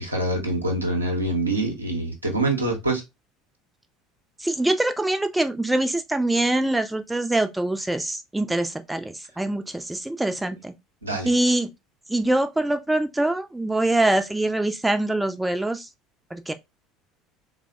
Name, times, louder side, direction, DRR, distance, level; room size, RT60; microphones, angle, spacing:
voice 1, 0.0-3.0 11.0-11.3, right 2 dB, 90° right, 0.6 m, -25 dB
voice 2, 4.4-10.7 11.2-11.7 12.1-15.9 16.3-16.5, right 2 dB, 10° right, 0.3 m, -24 dB
3.3 x 2.0 x 2.4 m
figure-of-eight pair, 65°, 0 cm